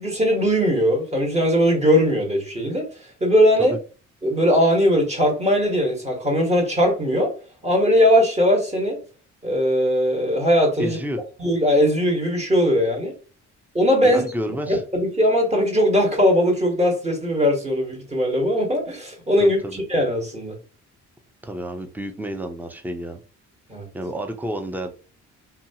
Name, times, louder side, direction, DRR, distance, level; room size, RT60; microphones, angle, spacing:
voice 1, 0.0-2.9 3.2-3.7 4.2-7.3 7.6-9.0 9.4-11.0 11.4-13.1 13.7-14.2 14.7-19.6 19.9-20.6 23.7-23.9, equal, 20° right, 1.1 m, -19 dB
voice 2, 10.8-11.2 14.0-14.8 19.4-19.8 21.4-23.2 23.9-24.9, equal, 5° right, 0.5 m, -30 dB
2.7 x 2.3 x 2.7 m
cardioid pair, 90°, 30 cm